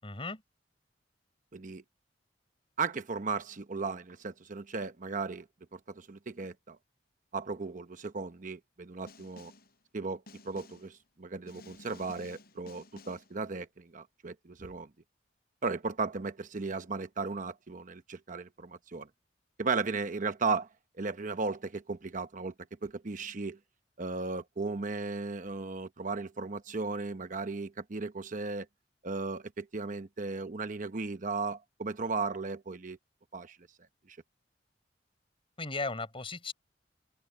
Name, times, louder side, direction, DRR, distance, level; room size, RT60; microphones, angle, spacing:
voice 1, 0.0-0.4 35.6-36.5, left 3 dB, 30° left, 4.9 m, -36 dB
voice 2, 1.5-1.8 2.8-5.5 5.7-6.8 7.3-9.5 9.9-14.9 15.6-19.1 19.6-20.7 21.0-22.5 22.8-23.6 24.0-28.7 29.0-33.0 33.3-33.6 34.1-34.2, right 4 dB, 45° right, 0.9 m, -36 dB
Snare drum, 9.1-9.8 10.3-11.0 11.5-13.4, left 2 dB, 55° left, 7.8 m, -53 dB
open air
head